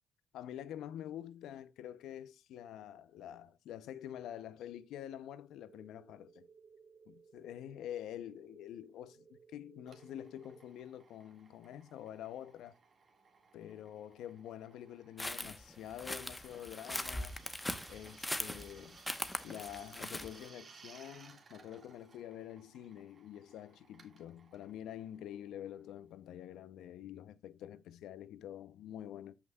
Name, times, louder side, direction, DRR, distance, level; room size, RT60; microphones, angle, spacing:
voice 1, 0.3-6.5 7.1-12.8 13.5-17.3 17.9-19.0 19.4-29.3, left 11 dB, 85° left, 0.6 m, -47 dB
sound 1, 5.7-10.7, right 5 dB, 65° right, 2.0 m, -62 dB
Drill, 9.9-26.2, right 5 dB, 45° right, 1.8 m, -61 dB
sound 2, 15.2-20.5, left 1 dB, 10° left, 0.9 m, -40 dB
14.0 x 5.6 x 2.3 m
cardioid pair, 90°, 0 cm